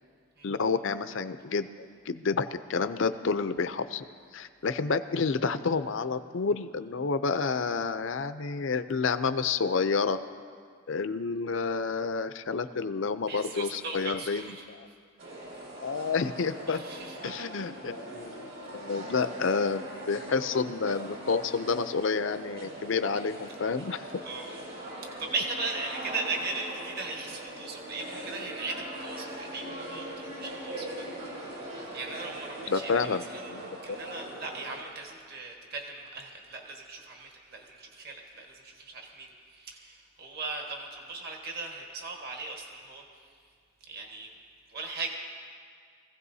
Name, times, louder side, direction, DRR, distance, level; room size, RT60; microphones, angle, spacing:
voice 1, 0.4-1.7 2.1-4.0 4.3-10.2 10.9-14.9 15.8-16.8 17.2-24.2 32.7-34.0, left 4 dB, 60° left, 11 dB, 0.5 m, -29 dB
voice 2, 13.3-14.6 16.7-17.3 24.2-24.5 25.0-31.1 31.9-33.5 33.8-43.2 43.8-44.3 44.7-45.2, right 3 dB, 45° right, 0 dB, 1.5 m, -38 dB
sound 1, 15.2-34.8, right 1 dB, 65° right, 4.5 m, -41 dB
24.0 x 16.0 x 2.7 m, 2.1 s
head